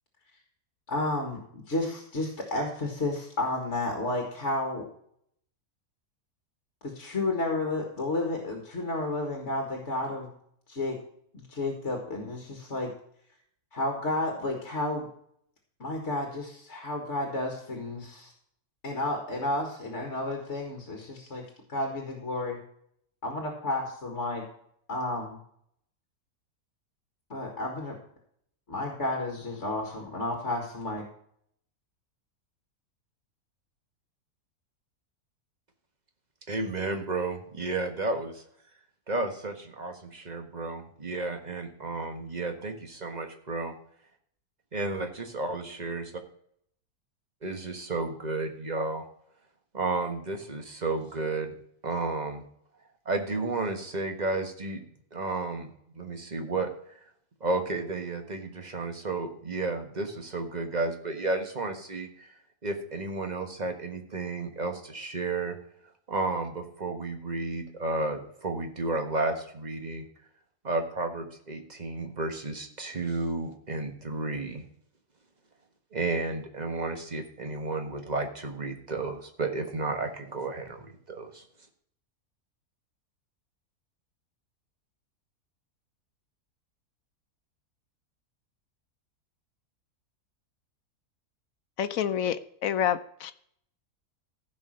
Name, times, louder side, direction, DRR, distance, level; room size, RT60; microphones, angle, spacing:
voice 1, 0.9-4.9 6.8-10.3 10.7-11.0 11.3-12.9 13.7-15.1 15.8-18.3 18.8-21.4 21.7-22.6 23.2-24.4 24.9-25.4 27.3-28.0 28.7-31.0, left 2 dB, 50° left, 2 dB, 2.1 m, -31 dB
voice 2, 36.5-38.4 39.1-43.7 44.7-46.2 47.4-49.0 49.7-51.5 51.8-52.4 53.0-54.8 55.1-57.0 57.4-62.3 62.6-65.6 66.1-70.0 70.6-74.6 75.9-81.4, right 3 dB, 30° right, 5 dB, 1.5 m, -32 dB
voice 3, 91.8-93.3, left 9 dB, 70° left, 13 dB, 1.0 m, -28 dB
15.0 x 5.1 x 6.3 m, 0.67 s
omnidirectional pair, 1.6 m